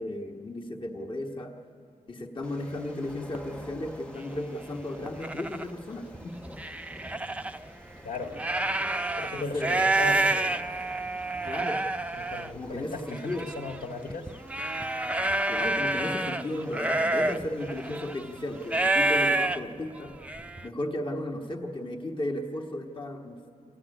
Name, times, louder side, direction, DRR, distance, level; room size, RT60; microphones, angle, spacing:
voice 1, 0.0-1.5 2.1-6.4 9.3-9.8 11.4-11.8 12.5-13.5 15.5-20.1 20.6-23.4, left 1 dB, 35° left, 0 dB, 1.3 m, -34 dB
sound 1, 2.4-19.0, equal, 10° left, 1.0 m, -50 dB
sound 2, 2.7-2.8 3.3-3.6 4.2-4.3 4.8-5.6 6.1-7.6 8.1-20.7, right 2 dB, 10° right, 0.4 m, -28 dB
voice 2, 8.0-8.4 9.2-10.5 12.2-14.3, left 3 dB, 75° left, 1 dB, 1.8 m, -36 dB
24.0 x 15.0 x 9.9 m, 2.6 s
wide cardioid pair, 135°, 15 cm